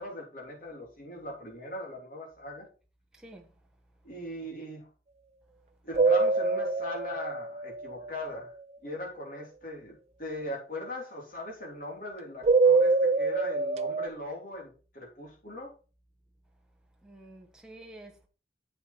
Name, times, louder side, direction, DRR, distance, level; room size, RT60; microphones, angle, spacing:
voice 1, 0.0-2.7 4.0-4.9 5.8-8.5 8.8-15.7, left 1 dB, 50° left, 3.5 m, -40 dB
voice 2, 3.1-3.5 17.0-18.3, right 1 dB, 5° right, 1.2 m, -49 dB
sound 1, 5.9-8.4 12.4-14.1, right 4 dB, 35° right, 0.4 m, -25 dB
7.9 x 7.0 x 4.5 m
head